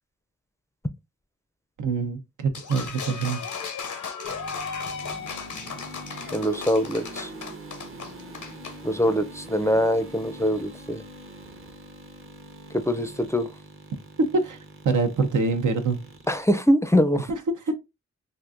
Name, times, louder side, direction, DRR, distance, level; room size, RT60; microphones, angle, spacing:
voice 1, 1.8-3.4 14.3-14.6 14.8-16.0 17.3-17.8, right 4 dB, 90° right, 0.6 m, -25 dB
sound 1, 2.5-8.8, left 5 dB, 85° left, 0.7 m, -35 dB
sound 2, 4.2-16.4, right 1 dB, 45° right, 0.7 m, -43 dB
voice 2, 6.3-7.3 8.8-11.0 12.7-13.5 16.3-17.3, equal, 10° left, 0.4 m, -23 dB
3.6 x 2.5 x 2.4 m
cardioid pair, 50°, 30 cm